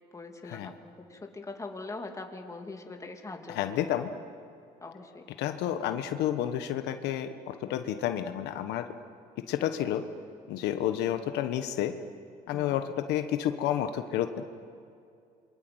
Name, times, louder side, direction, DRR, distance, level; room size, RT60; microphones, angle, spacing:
voice 1, 0.1-3.7 4.8-5.2 12.5-12.7, left 3 dB, 20° left, 3 dB, 2.7 m, -42 dB
voice 2, 3.5-4.1 5.4-8.8 9.4-10.0 10.5-11.9 12.5-14.4, left 11 dB, 85° left, 8 dB, 1.3 m, -30 dB
27.5 x 23.0 x 8.1 m, 2.4 s
cardioid pair, 110°, 17 cm